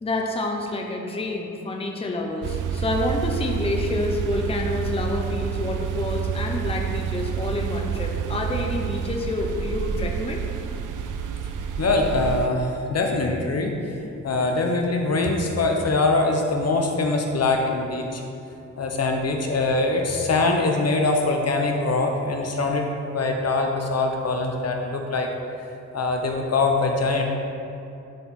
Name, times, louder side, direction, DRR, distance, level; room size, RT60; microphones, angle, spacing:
voice 1, 0.0-10.4, left 2 dB, 20° left, 1 dB, 0.7 m, -28 dB
sound 1, 2.4-12.5, right 8 dB, 75° right, 0.5 m, -28 dB
voice 2, 11.8-13.9 14.2-18.2 18.8-22.9 23.1-25.3 25.9-27.2, left 3 dB, 50° left, 2 dB, 0.8 m, -23 dB
11.0 x 4.5 x 3.7 m, 2.7 s
wide cardioid pair, 115°, 31 cm